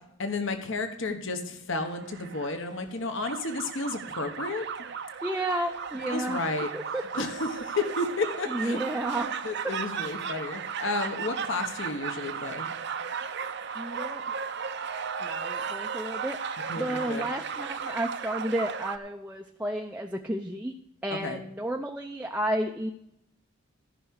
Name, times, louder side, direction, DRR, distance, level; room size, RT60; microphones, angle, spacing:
voice 1, 0.2-4.6 6.1-6.7 7.1-8.8 9.1-12.7 16.7-17.3 21.1-21.4, left 3 dB, 60° left, 6 dB, 1.2 m, -32 dB
sound 1, 1.8-2.9 3.2-19.0, right 6 dB, 50° right, 0.7 m, -35 dB
voice 2, 5.2-6.4 6.7-7.2 8.5-9.3 9.6-9.7 13.7-14.3 15.2-20.7 21.0-22.9, right 1 dB, 5° right, 2 dB, 0.5 m, -32 dB
14.5 x 5.8 x 6.4 m, 0.78 s
head